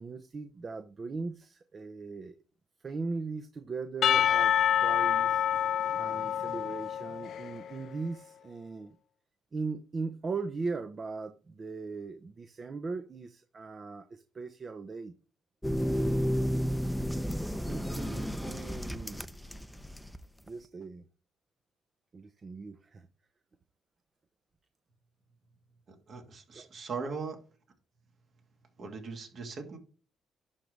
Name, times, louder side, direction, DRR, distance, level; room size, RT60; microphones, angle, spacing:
voice 1, 0.0-2.4 2.8-4.5 4.8-5.5 5.9-8.9 9.5-15.1 17.6-19.2 20.5-21.1 22.1-23.1 26.5-26.7, right 4 dB, 40° right, 0.7 m, -39 dB
Percussion / Church bell, 4.0-7.7, left 10 dB, 65° left, 0.3 m, -27 dB
sound 1, 15.6-20.2 20.5-20.6, equal, ahead, 0.6 m, -32 dB
voice 2, 25.9-27.4 28.8-29.8, right 4 dB, 55° right, 2.4 m, -39 dB
11.0 x 4.0 x 3.3 m
cardioid pair, 90°, 0 cm